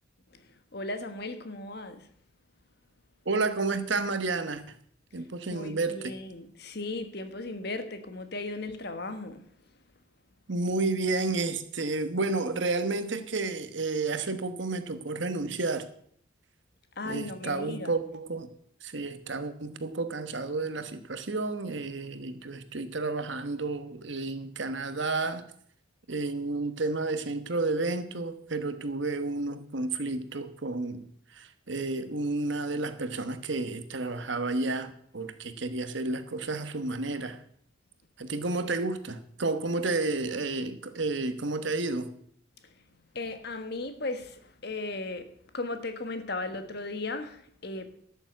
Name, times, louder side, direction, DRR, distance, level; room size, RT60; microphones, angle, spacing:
voice 1, 0.7-2.1 5.5-9.5 17.0-17.9 43.1-45.3 45.5-48.0, left 2 dB, 50° left, 1.3 m, -36 dB
voice 2, 3.2-4.6 5.1-6.1 10.5-15.9 17.0-18.5 18.8-25.4 26.1-31.1 31.3-37.4 38.2-42.1, right 3 dB, 65° right, 1.1 m, -31 dB
12.0 x 7.1 x 8.0 m
head